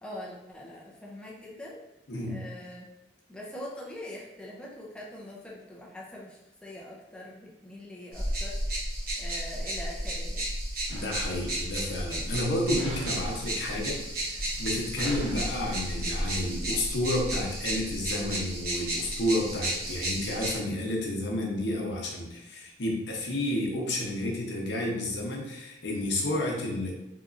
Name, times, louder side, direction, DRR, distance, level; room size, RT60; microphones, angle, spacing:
voice 1, 0.0-1.9 2.3-2.9 3.3-8.9 9.2-10.5, left 1 dB, 5° left, -4 dB, 0.5 m, -43 dB
voice 2, 2.1-2.4 10.9-14.0 14.3-26.9, left 1 dB, 75° left, -1 dB, 0.8 m, -31 dB
sound 1, 8.1-20.6, right 1 dB, 55° right, 1.0 m, -33 dB
sound 2, 10.9-17.0, equal, 30° right, 1.4 m, -44 dB
3.6 x 2.9 x 2.5 m, 0.95 s
head